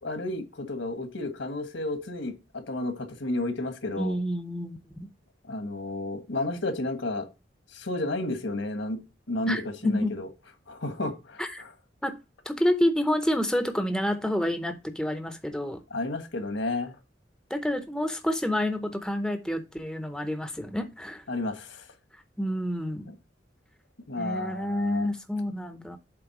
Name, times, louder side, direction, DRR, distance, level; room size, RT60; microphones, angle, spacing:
voice 1, 0.0-4.2 5.5-7.3 7.7-9.0 9.3-10.3 10.7-11.7 15.9-16.9 21.3-21.8 23.1-23.2 24.1-25.1, left 2 dB, 75° left, 1.5 m, -32 dB
voice 2, 4.0-5.1 9.5-10.1 11.4-11.6 12.0-12.2 12.5-15.8 17.5-21.2 22.4-23.1 24.2-26.0, left 1 dB, 5° left, 0.6 m, -28 dB
7.7 x 3.6 x 5.8 m
head